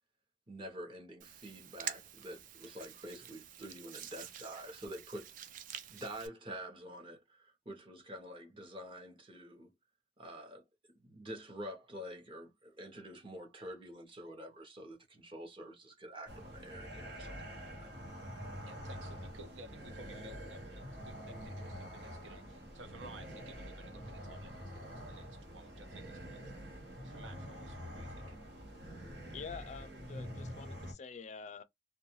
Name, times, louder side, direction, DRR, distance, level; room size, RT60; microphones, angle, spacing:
voice 1, 0.5-5.3 5.9-9.7 10.2-10.6 10.9-17.9, right 1 dB, 30° right, 0.7 m, -47 dB
Hands, 1.2-6.3, right 9 dB, 45° right, 0.3 m, -47 dB
sound 1, 16.3-30.9, equal, 65° right, 1.0 m, -46 dB
voice 2, 18.6-26.7 27.0-28.4, right 2 dB, 80° right, 0.7 m, -55 dB
voice 3, 29.3-31.6, left 5 dB, 40° left, 0.3 m, -47 dB
2.3 x 2.2 x 2.9 m
head